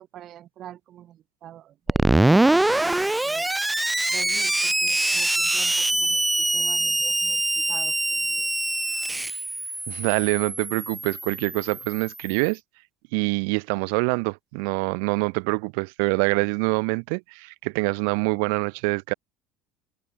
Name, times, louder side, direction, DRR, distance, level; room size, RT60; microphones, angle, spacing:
voice 1, 0.0-3.5 4.1-8.5, right 12 dB, 50° right, 5.6 m, -45 dB
Screech, 1.9-12.3, right 2 dB, 10° right, 0.6 m, -24 dB
voice 2, 9.9-12.6 13.1-19.1, right 40 dB or more, 80° right, 3.3 m, -25 dB
supercardioid pair, 115°, 0 cm